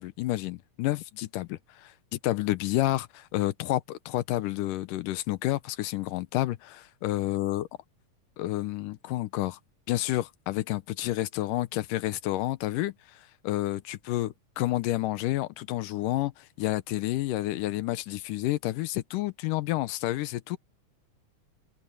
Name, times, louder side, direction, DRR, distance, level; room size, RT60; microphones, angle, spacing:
voice 1, 0.0-7.7 8.4-9.6 9.9-12.9 13.4-20.6, left 16 dB, 90° left, 2.4 m, -30 dB
open air
omnidirectional pair, 3.6 m